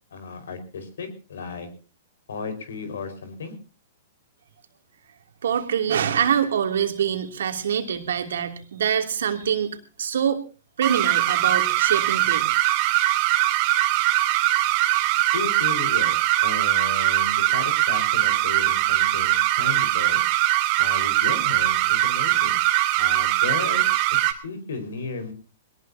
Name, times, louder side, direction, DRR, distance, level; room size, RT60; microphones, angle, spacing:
voice 1, 0.1-1.7 2.3-3.5 15.3-20.2 20.8-22.6 23.0-25.3, left 4 dB, 75° left, 10 dB, 5.0 m, -34 dB
voice 2, 5.4-10.4 10.8-12.5, right 8 dB, 75° right, 5 dB, 2.9 m, -25 dB
sound 1, 10.8-24.3, right 16 dB, 45° right, 2.6 m, -21 dB
22.0 x 19.5 x 2.8 m, 0.34 s
hypercardioid pair, 125°, 0 cm